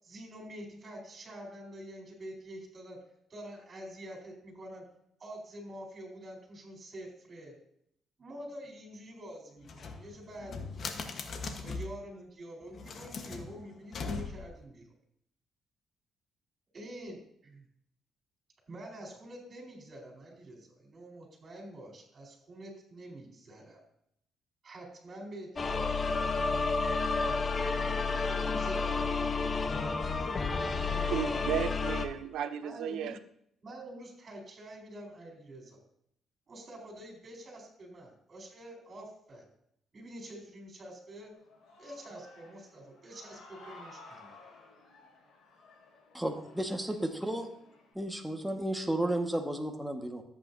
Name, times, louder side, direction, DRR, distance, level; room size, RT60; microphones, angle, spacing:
voice 1, 0.0-3.0 3.3-4.8 5.2-7.6 8.2-11.0 11.6-14.9 16.7-17.7 18.7-23.8 24.6-27.4 28.1-31.5 32.6-33.2 33.6-35.8 36.5-39.5 39.9-41.3 41.8-44.3, right 1 dB, 40° right, 4.1 m, -47 dB
sound 1, 9.6-12.0 12.7-14.6, left 4 dB, 55° left, 1.3 m, -40 dB
sound 2, 25.6-32.1, left 4 dB, 35° left, 0.9 m, -30 dB
voice 2, 31.1-33.2, right 9 dB, 85° right, 0.7 m, -34 dB
Human voice / Cheering, 41.3-47.9, left 2 dB, 70° left, 3.9 m, -55 dB
voice 3, 46.1-47.5 47.9-50.2, right 1 dB, 5° right, 1.5 m, -33 dB
13.5 x 8.5 x 2.7 m
cardioid pair, 90°, 0 cm